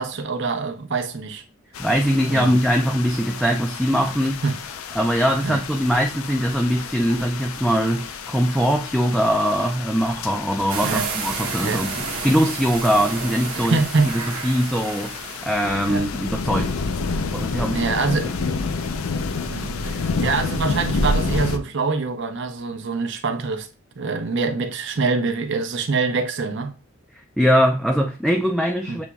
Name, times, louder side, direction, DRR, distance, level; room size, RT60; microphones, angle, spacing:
voice 1, 0.0-1.4 2.3-2.6 4.4-4.6 5.4-5.6 10.8-11.1 11.6-11.8 13.5-14.2 15.9-16.1 17.7-18.3 19.5-23.7 24.0-26.7 28.9-29.0, right 4 dB, 55° right, 0.6 m, -25 dB
sound 1, 1.7-21.6, left 3 dB, 80° left, 0.5 m, -29 dB
voice 2, 1.8-4.4 5.0-11.9 12.2-13.8 14.4-15.1 15.4-16.7 17.3-17.9 27.1-29.0, equal, ahead, 0.3 m, -21 dB
sound 2, 10.7-15.9, right 5 dB, 90° right, 1.0 m, -31 dB
6.9 x 3.0 x 2.3 m
head